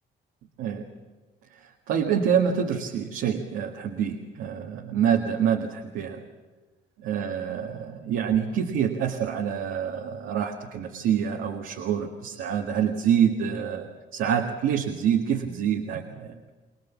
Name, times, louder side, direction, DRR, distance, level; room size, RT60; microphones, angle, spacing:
voice 1, 1.6-6.2 7.1-16.4, right 8 dB, 90° right, 2 dB, 1.8 m, -26 dB
24.5 x 19.0 x 7.2 m, 1.3 s
cardioid pair, 90°, 20 cm